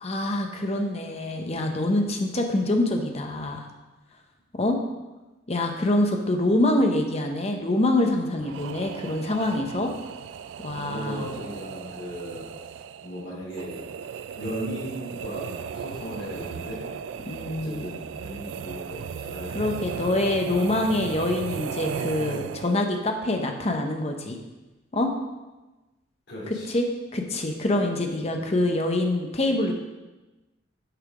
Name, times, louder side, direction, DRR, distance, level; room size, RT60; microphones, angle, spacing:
voice 1, 0.0-3.7 4.5-4.8 5.5-9.9 10.6-11.3 17.3-17.9 19.5-24.4 24.9-25.1 26.7-29.7, left 1 dB, 35° left, 4 dB, 0.8 m, -25 dB
sound 1, 8.4-23.0, right 7 dB, 70° right, 0.3 m, -36 dB
voice 2, 10.7-12.5 13.0-13.8 14.4-16.9 17.5-20.6 26.3-26.7 28.3-28.5, equal, 60° left, -8 dB, 2.8 m, -37 dB
6.7 x 5.7 x 4.8 m, 1.1 s
head